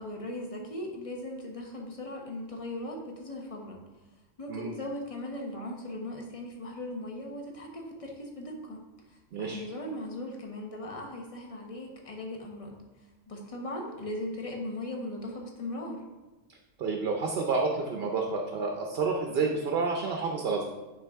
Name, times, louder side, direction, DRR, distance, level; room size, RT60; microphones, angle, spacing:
voice 1, 0.0-3.8 4.4-8.8 9.1-12.8 13.3-16.0, left 1 dB, 30° left, 1 dB, 0.9 m, -38 dB
voice 2, 9.3-9.6 16.8-20.6, right 4 dB, 55° right, 1 dB, 0.8 m, -29 dB
9.2 x 3.8 x 3.5 m, 1.1 s
omnidirectional pair, 1.3 m